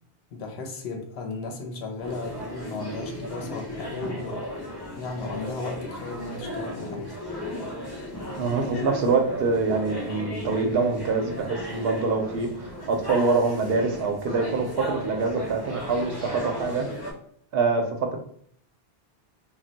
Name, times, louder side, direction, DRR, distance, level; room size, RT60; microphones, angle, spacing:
voice 1, 0.3-4.5 5.0-7.2, left 3 dB, 85° left, 3 dB, 0.9 m, -35 dB
sound 1, 2.0-17.1, left 1 dB, 25° left, 0.8 m, -35 dB
voice 2, 8.4-16.9 17.5-18.2, right 4 dB, 70° right, 5 dB, 0.7 m, -25 dB
2.2 x 2.1 x 3.8 m, 0.63 s
omnidirectional pair, 1.0 m